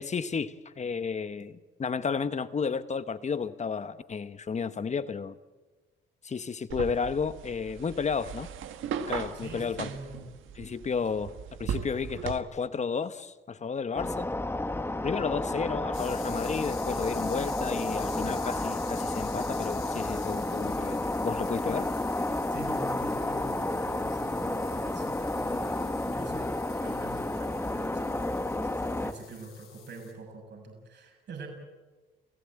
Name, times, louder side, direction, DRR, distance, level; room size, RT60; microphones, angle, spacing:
voice 1, 0.0-5.4 6.2-8.5 9.1-9.9 10.5-11.3 11.6-14.3 15.0-21.9, left 5 dB, 35° left, 1.1 m, -32 dB
sound 1, 6.7-12.4, right 8 dB, 80° right, 1.6 m, -38 dB
voice 2, 9.3-10.2 22.5-31.5, right 3 dB, 60° right, 6.8 m, -45 dB
sound 2, 13.9-29.1, left 2 dB, 10° left, 1.4 m, -31 dB
sound 3, 15.9-30.1, left 8 dB, 80° left, 7.3 m, -48 dB
29.0 x 16.0 x 8.8 m
cardioid pair, 90°, 20 cm